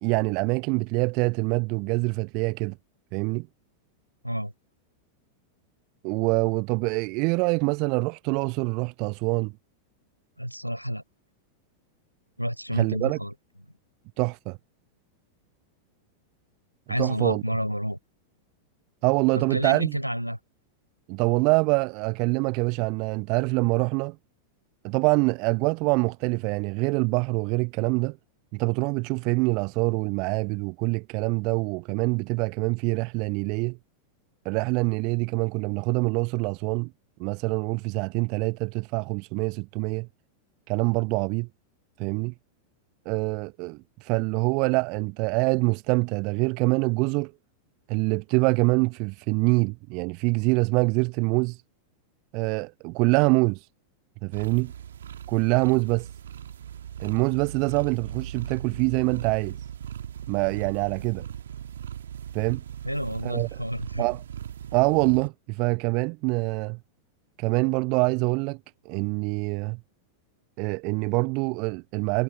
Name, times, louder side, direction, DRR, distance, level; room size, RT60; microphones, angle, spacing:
voice 1, 0.0-2.7 3.1-3.5 6.0-9.5 12.7-13.2 14.2-14.6 17.0-17.4 19.0-20.0 21.1-24.2 24.8-28.2 28.5-33.8 34.4-36.9 37.2-40.1 40.7-41.5 42.0-42.3 43.1-47.3 47.9-51.6 52.3-53.7 54.2-54.7 55.3-56.1 57.0-59.6 60.3-61.3 62.3-62.6 63.2-63.5 64.0-64.2 64.7-66.8 67.4-68.6 68.8-69.8 70.6-72.2, right 30 dB, 45° right, 0.7 m, -25 dB
voice 2, 10.4-11.0 12.4-13.3 16.9-18.0 19.3-20.4 62.8-64.1, equal, 90° right, 4.0 m, -29 dB
sound 1, 54.3-65.3, right 9 dB, 65° right, 2.1 m, -39 dB
figure-of-eight pair, 90°, 0 cm